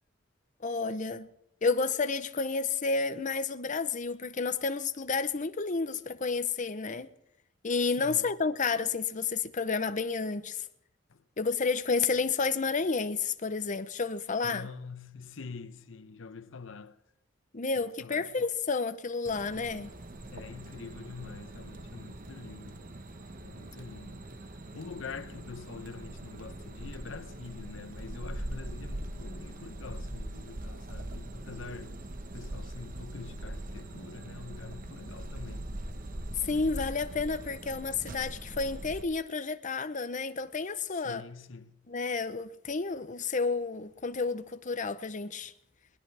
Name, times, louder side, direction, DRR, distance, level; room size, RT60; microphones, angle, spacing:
voice 1, 0.6-1.3 1.6-7.1 7.6-10.6 11.4-14.7 17.5-19.9 36.4-41.2 41.9-45.5, left 4 dB, 40° left, 0.8 m, -31 dB
voice 2, 7.9-8.3 11.1-11.2 14.4-17.0 17.8-18.5 20.3-22.9 23.4-24.4 24.7-32.0 32.3-35.8 36.5-36.8 40.9-41.9, left 4 dB, 80° left, 0.8 m, -45 dB
sound 1, 19.2-39.0, right 1 dB, 45° right, 1.2 m, -42 dB
21.5 x 19.5 x 3.4 m
head